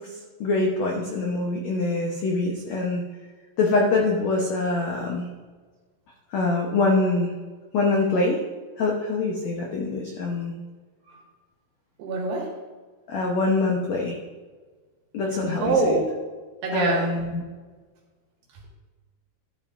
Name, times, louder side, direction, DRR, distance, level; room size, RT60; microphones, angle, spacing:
voice 1, 0.4-3.0 3.6-5.3 6.3-7.3 7.7-8.4 8.8-10.5 13.1-14.2 15.1-16.0 16.7-17.4, left 3 dB, 90° left, 0 dB, 1.5 m, -24 dB
voice 2, 12.0-12.4 15.6-16.0 16.6-17.0, right 3 dB, 75° right, -2 dB, 3.9 m, -23 dB
13.0 x 11.5 x 2.6 m, 1.4 s
omnidirectional pair, 4.8 m